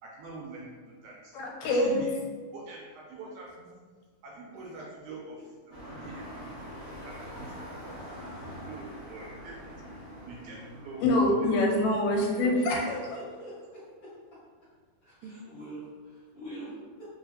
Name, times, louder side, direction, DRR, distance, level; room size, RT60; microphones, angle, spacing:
voice 1, 0.0-1.3 1.6-2.2 2.5-3.8 4.2-5.4 5.7-6.7 7.1-8.0 8.4-9.5 10.3-11.5 12.4-12.9 15.2-15.3, right 3 dB, 80° right, -3 dB, 1.8 m, -45 dB
voice 2, 1.3-2.0 11.0-13.1, left 1 dB, 90° left, 0 dB, 2.2 m, -25 dB
sound 1, 5.7-11.0, equal, 55° right, 0.9 m, -43 dB
voice 3, 12.4-14.1 15.0-17.0, equal, 70° left, -11 dB, 1.4 m, -44 dB
4.9 x 2.5 x 2.6 m, 1.6 s
omnidirectional pair, 3.7 m